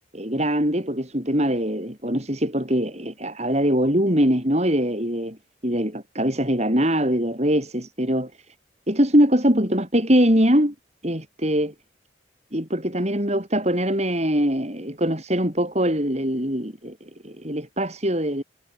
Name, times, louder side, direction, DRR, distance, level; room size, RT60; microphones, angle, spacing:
voice 1, 0.1-5.4 5.6-8.3 8.9-10.7 11.0-11.7 12.5-17.0 17.2-18.4, equal, 35° right, 6.6 m, -22 dB
head